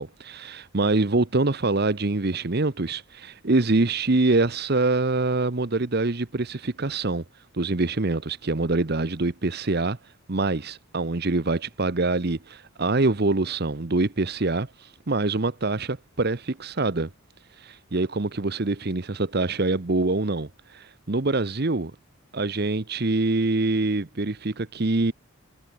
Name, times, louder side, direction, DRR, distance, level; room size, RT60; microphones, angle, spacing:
voice 1, 0.0-7.2 7.5-10.0 10.3-17.1 17.6-21.9 22.3-25.1, right 2 dB, 45° right, 0.9 m, -25 dB
head